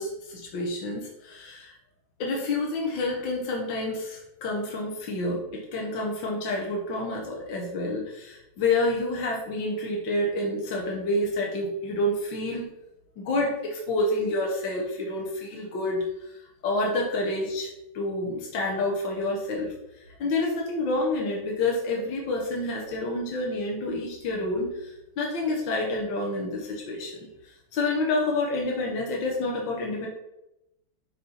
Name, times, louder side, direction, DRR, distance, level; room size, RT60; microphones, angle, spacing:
voice 1, 0.0-1.7 2.2-12.6 13.2-19.7 20.2-30.1, left 2 dB, 70° left, -1 dB, 1.9 m, -28 dB
8.2 x 4.2 x 4.3 m, 0.88 s
omnidirectional pair, 2.1 m